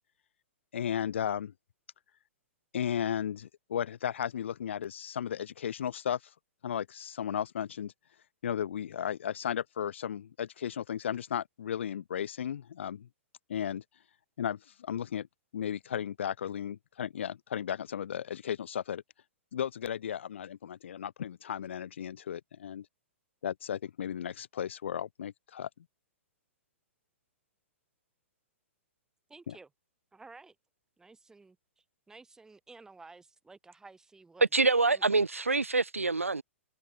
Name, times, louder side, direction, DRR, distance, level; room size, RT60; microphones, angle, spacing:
voice 1, 0.7-1.5 2.7-6.2 6.6-7.9 8.4-13.1 13.5-13.8 14.4-15.3 15.5-19.0 19.5-22.8 23.4-25.7 29.5-29.6, left 9 dB, 60° left, 1.4 m, -35 dB
voice 2, 29.3-29.7 30.1-30.6 31.0-34.5 34.9-35.0, right 3 dB, 10° right, 4.4 m, -53 dB
voice 3, 34.5-36.4, right 3 dB, 85° right, 0.5 m, -26 dB
open air
figure-of-eight pair, 115°, 7 cm